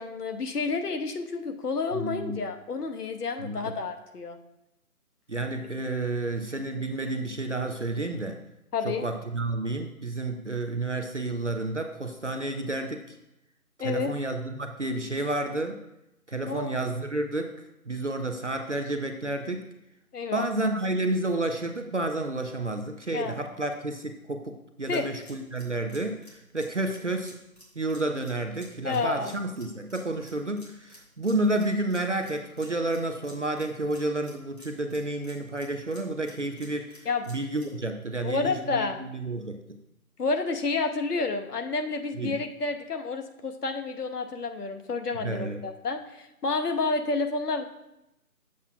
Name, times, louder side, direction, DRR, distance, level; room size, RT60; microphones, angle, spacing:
voice 1, 0.0-4.4 8.7-9.0 13.8-14.1 16.5-16.8 20.1-20.4 23.1-23.4 24.9-25.1 28.8-29.4 37.0-37.3 38.2-39.0 40.2-47.6, left 4 dB, 85° left, 7 dB, 0.9 m, -30 dB
voice 2, 1.9-2.4 3.4-3.7 5.3-8.4 8.8-13.2 13.8-15.8 16.3-17.5 17.9-19.6 20.3-26.2 26.5-27.4 27.8-39.6 42.2-42.4 45.2-45.6, right 2 dB, 55° right, 5 dB, 0.5 m, -30 dB
sound 1, 24.9-37.8, equal, 45° left, 1.7 m, -53 dB
8.2 x 7.3 x 2.3 m, 0.88 s
figure-of-eight pair, 180°, 45 cm